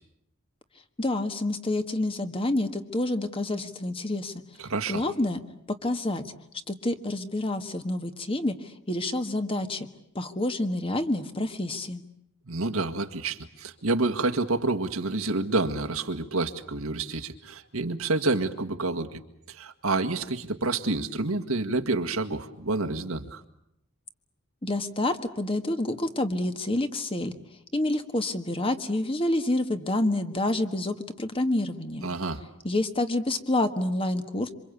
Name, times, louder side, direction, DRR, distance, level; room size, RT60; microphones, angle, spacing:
voice 1, 1.0-4.3 4.9-5.4 5.8-6.2 6.7-9.9 10.1-12.0 24.6-27.3 27.7-32.1 32.6-34.5, left 1 dB, 25° left, 8 dB, 1.6 m, -28 dB
voice 2, 4.6-5.0 12.5-19.2 19.5-23.4 32.0-32.4, right 3 dB, 85° right, 4 dB, 1.9 m, -28 dB
27.0 x 25.5 x 8.4 m, 0.79 s
head